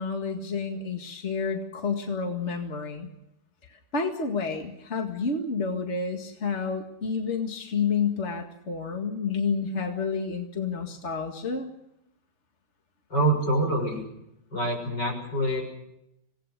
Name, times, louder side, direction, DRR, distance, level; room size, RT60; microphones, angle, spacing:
voice 1, 0.0-3.1 3.7-11.7, left 5 dB, 40° left, 3 dB, 2.3 m, -30 dB
voice 2, 13.1-14.1 14.5-15.7, right 1 dB, 75° left, 3 dB, 7.2 m, -25 dB
26.5 x 19.0 x 6.7 m, 0.82 s
omnidirectional pair, 1.9 m